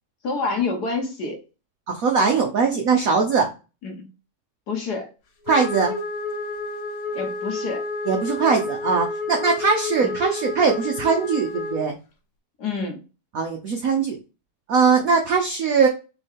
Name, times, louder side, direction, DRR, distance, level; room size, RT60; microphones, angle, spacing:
voice 1, 0.2-1.4 3.8-4.1 4.7-5.1 7.1-7.8 10.0-10.1 12.6-13.0, left 4 dB, 55° left, 2 dB, 1.5 m, -27 dB
voice 2, 1.9-3.5 5.5-5.9 8.1-12.0 13.3-14.2 14.7-15.9, right 5 dB, 70° right, 1 dB, 0.8 m, -21 dB
Wind instrument woodwind instrument, 5.5-11.9, left 3 dB, 75° left, 1.8 m, -30 dB
4.5 x 3.0 x 3.5 m, 0.31 s
omnidirectional pair, 2.4 m